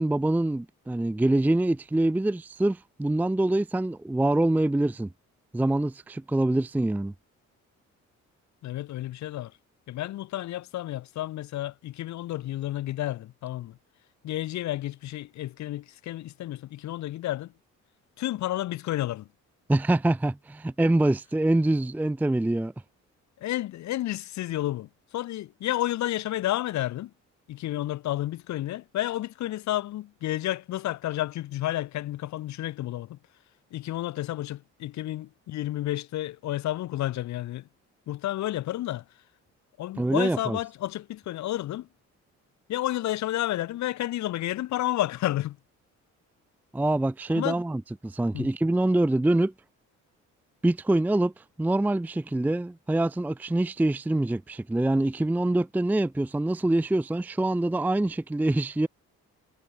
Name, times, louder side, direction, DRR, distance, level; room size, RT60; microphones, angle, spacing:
voice 1, 0.0-5.1 5.5-7.1 19.7-22.7 40.0-40.6 46.7-49.5 50.6-51.3 51.6-58.9, right 1 dB, 5° right, 0.5 m, -25 dB
voice 2, 8.6-9.5 9.9-13.8 14.2-17.5 18.2-19.3 23.4-27.1 27.5-33.2 33.7-37.7 38.1-39.0 39.8-41.9 42.7-45.6 47.3-47.6 48.3-48.5, left 14 dB, 65° left, 0.7 m, -31 dB
cardioid pair, 90°, 30 cm